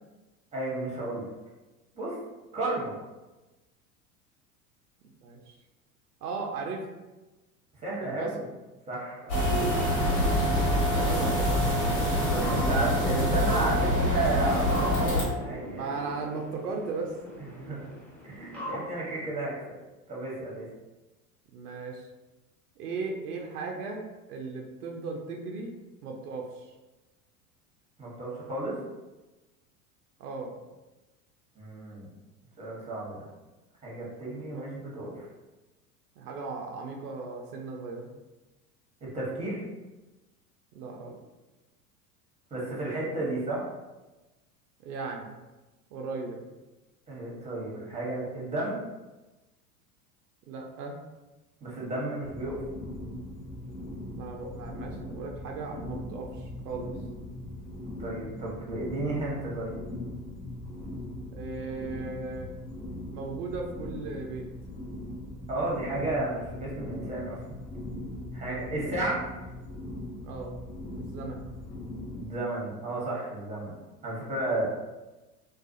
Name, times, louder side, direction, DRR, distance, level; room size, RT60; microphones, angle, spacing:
voice 1, 0.5-1.2 1.9-2.2 2.5-2.9 7.8-8.4 8.9-9.2 11.1-11.3 12.2-15.9 17.5-17.9 18.2-19.5 20.1-20.6 28.0-28.8 31.5-32.1 32.6-33.3 33.8-35.3 39.0-39.6 42.5-43.6 47.1-48.8 51.6-52.6 58.0-59.8 65.5-67.4 68.3-69.2 72.1-73.7 74.0-74.7, right 2 dB, 15° right, -5 dB, 1.0 m, -33 dB
voice 2, 5.2-5.5 6.2-6.8 8.0-8.3 9.2-9.6 9.9-10.2 10.9-11.8 15.8-17.1 21.5-22.1 22.8-25.7 26.0-26.7 30.2-30.5 34.5-34.6 35.0-35.1 36.2-38.1 40.7-41.2 44.8-45.4 45.9-46.5 50.5-51.0 54.1-56.9 61.3-62.5 63.1-64.5 68.4-68.6 70.2-70.6 71.0-71.4 74.5-74.7, right 4 dB, 80° right, 1 dB, 0.5 m, -37 dB
sound 1, 9.3-15.2, equal, 65° left, 1.4 m, -25 dB
sound 2, 9.5-19.3, left 1 dB, 5° left, 0.3 m, -42 dB
sound 3, 52.2-72.2, left 1 dB, 25° left, 0.9 m, -40 dB
2.3 x 2.3 x 2.5 m, 1.1 s
hypercardioid pair, 85°, 46 cm